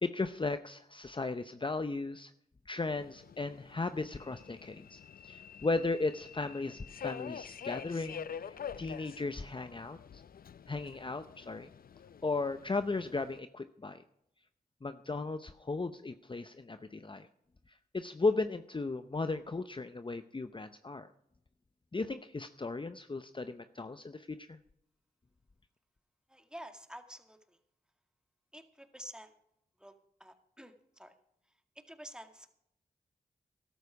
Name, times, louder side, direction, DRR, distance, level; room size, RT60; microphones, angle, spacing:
voice 1, 0.0-2.3 2.7-8.3 8.8-10.2 10.7-11.7 12.2-14.0 14.8-17.3 17.9-21.1 21.9-24.6, left 3 dB, 30° left, 10 dB, 0.7 m, -36 dB
Subway metro underground, 2.9-13.4, left 8 dB, 65° left, 0.5 m, -47 dB
voice 2, 26.3-27.6 28.5-29.4 29.8-31.1 31.4-32.5, equal, 5° right, 6 dB, 2.1 m, -50 dB
13.5 x 12.5 x 4.8 m, 0.75 s
cardioid pair, 45°, 16 cm